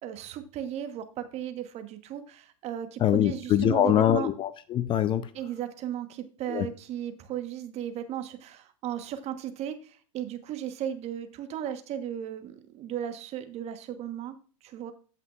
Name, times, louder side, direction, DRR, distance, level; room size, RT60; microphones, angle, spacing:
voice 1, 0.0-4.3 5.3-14.4 14.6-14.9, right 10 dB, 35° right, 1.2 m, -36 dB
voice 2, 3.0-5.3 6.5-6.7, left 11 dB, 30° left, 0.5 m, -24 dB
14.5 x 5.7 x 2.4 m
hypercardioid pair, 105°, 18 cm